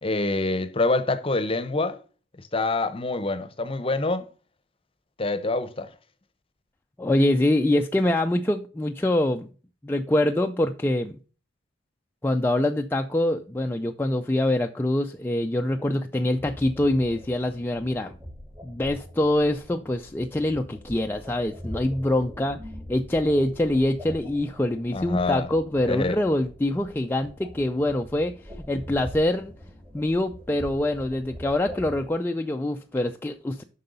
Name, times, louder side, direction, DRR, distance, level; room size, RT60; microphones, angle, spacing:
voice 1, 0.0-2.0 2.5-4.3 5.2-5.9 24.9-25.5 25.9-26.2, left 2 dB, 30° left, 0.8 m, -26 dB
voice 2, 7.0-9.5 9.8-11.2 12.2-18.2 18.6-22.6 22.9-28.3 28.7-29.5 29.9-33.6, left 1 dB, 10° left, 0.4 m, -24 dB
sound 1, 16.3-32.1, equal, 20° right, 1.7 m, -43 dB
7.8 x 5.5 x 5.4 m
head